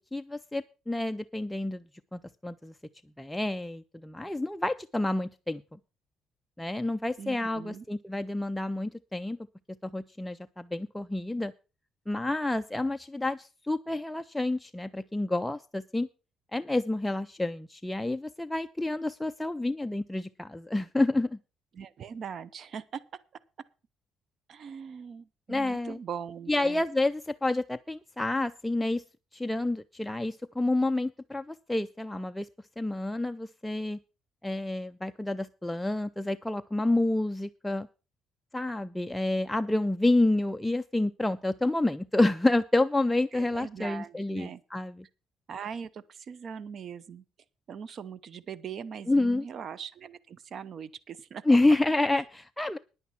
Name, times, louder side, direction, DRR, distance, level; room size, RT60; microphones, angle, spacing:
voice 1, 0.1-1.8 2.1-2.7 3.2-5.6 6.6-9.4 9.8-11.5 12.1-16.1 16.5-21.4 25.5-26.0 26.5-29.0 29.3-32.5 32.8-34.0 34.4-37.9 38.5-45.1 49.1-49.4 51.5-52.8, left 2 dB, 5° left, 9 dB, 0.5 m, -29 dB
voice 2, 7.2-7.8 21.7-23.0 24.5-26.8 43.3-44.6 45.5-47.2 47.7-51.6 52.1-52.2, right 7 dB, 55° right, 18 dB, 0.8 m, -41 dB
10.5 x 9.3 x 5.8 m, 0.33 s
cardioid pair, 95°, 0 cm